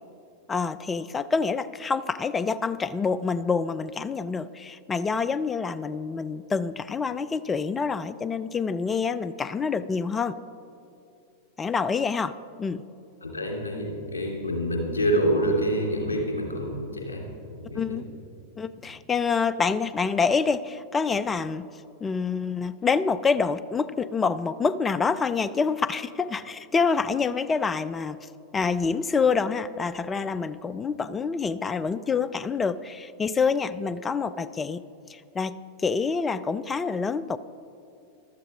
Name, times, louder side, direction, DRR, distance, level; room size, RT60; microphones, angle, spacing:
voice 1, 0.5-10.4 11.6-12.8 17.8-18.0 18.6-21.7 22.0-28.2 28.5-34.8 35.1-37.4, left 5 dB, 15° left, 16 dB, 0.4 m, -27 dB
voice 2, 13.2-17.2 17.5-18.0, right 1 dB, 70° left, 0 dB, 2.6 m, -27 dB
15.0 x 12.0 x 3.6 m, 2.6 s
figure-of-eight pair, 90°, 0 cm